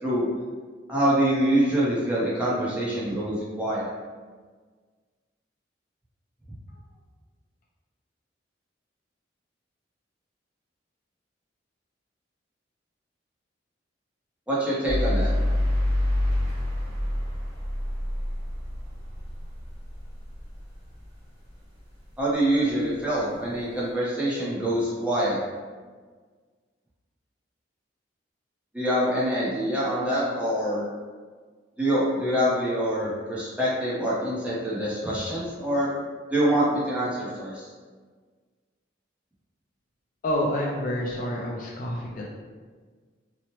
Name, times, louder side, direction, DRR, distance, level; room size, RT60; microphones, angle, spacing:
voice 1, 0.9-3.9 14.5-15.3 22.2-25.4 28.7-30.8 31.8-35.9 36.3-37.7, right 1 dB, 5° right, -8 dB, 0.6 m, -25 dB
sound 1, 14.9-21.0, left 1 dB, 40° right, 1.5 m, -27 dB
voice 2, 40.2-42.3, left 1 dB, 45° left, -2 dB, 0.3 m, -28 dB
2.9 x 2.0 x 2.9 m, 1.5 s
head